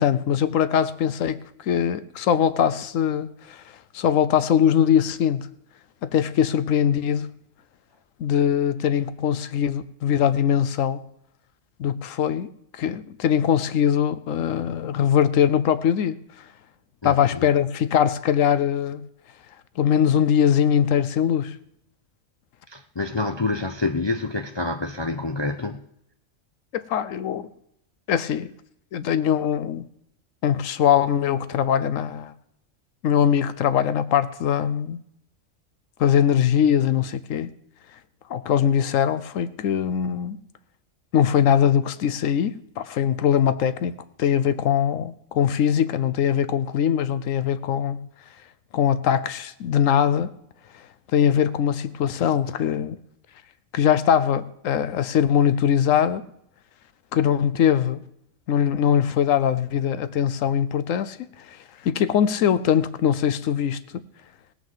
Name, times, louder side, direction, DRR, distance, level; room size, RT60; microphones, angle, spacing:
voice 1, 0.0-3.6 3.9-5.5 6.0-7.3 8.2-11.0 11.8-16.2 17.0-19.0 19.8-21.6 26.7-27.5 28.1-28.5 28.9-29.8 30.4-32.3 33.0-35.0 36.0-37.5 38.3-40.4 41.1-48.1 48.7-50.3 51.1-53.0 53.7-56.3 57.1-58.0 58.5-61.2 61.5-61.6 61.8-64.0, left 9 dB, 80° left, 1.1 m, -21 dB
voice 2, 17.0-17.4 22.7-25.9, left 3 dB, 45° left, 0.3 m, -27 dB
17.5 x 6.1 x 7.3 m
omnidirectional pair, 1.3 m